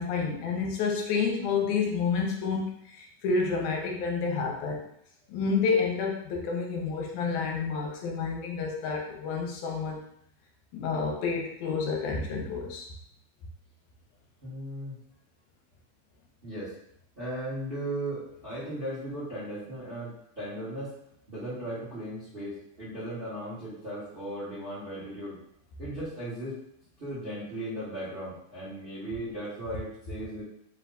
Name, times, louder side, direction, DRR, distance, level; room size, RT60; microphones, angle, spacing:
voice 1, 0.0-2.7 2.9-4.8 5.3-10.0 10.7-12.9, left 5 dB, 85° left, 0 dB, 2.1 m, -29 dB
voice 2, 14.4-14.9 16.4-16.7 17.2-20.9 21.3-25.4 25.8-26.6 27.0-30.4, right 1 dB, 35° right, -10 dB, 0.9 m, -37 dB
4.8 x 2.3 x 3.8 m, 0.70 s
omnidirectional pair, 3.6 m